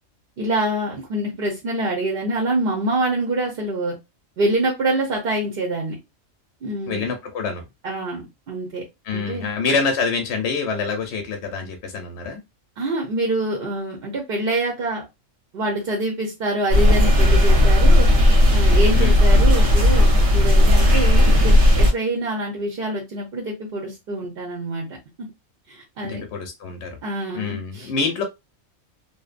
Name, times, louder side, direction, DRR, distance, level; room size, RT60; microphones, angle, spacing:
voice 1, 0.4-4.0 4.4-6.0 6.6-7.1 7.8-8.8 9.1-9.5 12.8-15.0 15.5-18.1 18.5-25.0 25.7-26.2 27.0-27.9, right 1 dB, 55° right, 0.8 m, -25 dB
voice 2, 6.9-7.6 9.1-12.4 18.9-19.2 26.0-27.0 27.3-28.2, left 4 dB, 65° left, 0.8 m, -26 dB
sound 1, 16.7-21.9, left 1 dB, 85° right, 1.2 m, -14 dB
2.7 x 2.1 x 2.4 m
omnidirectional pair, 1.3 m